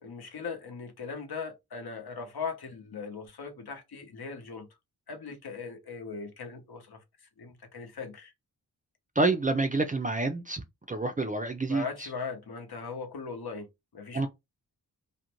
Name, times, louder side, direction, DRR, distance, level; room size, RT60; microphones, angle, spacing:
voice 1, 0.0-4.7 5.1-8.3 11.7-14.3, left 5 dB, 75° left, 0.8 m, -39 dB
voice 2, 9.2-11.8 14.1-14.3, right 3 dB, 20° right, 0.3 m, -28 dB
2.5 x 2.1 x 2.9 m
wide cardioid pair, 105°, 39 cm